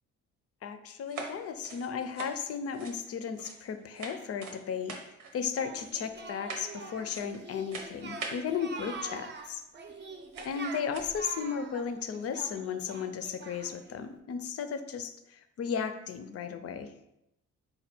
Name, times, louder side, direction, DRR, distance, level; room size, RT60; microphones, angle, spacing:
voice 1, 0.6-5.0 5.3-9.6 10.4-16.9, left 7 dB, 50° left, 9 dB, 0.5 m, -35 dB
sound 1, 1.1-3.7 4.0-4.6 4.9-5.4 5.8-6.1 6.5-6.8 7.1-7.5 7.7-8.4 9.6-9.7 10.3-10.6 10.9-11.2, right 4 dB, 90° right, 0.8 m, -42 dB
Singing, 5.6-13.9, right 3 dB, 35° right, 0.6 m, -44 dB
4.5 x 2.3 x 4.2 m, 0.84 s
cardioid pair, 90°, 30 cm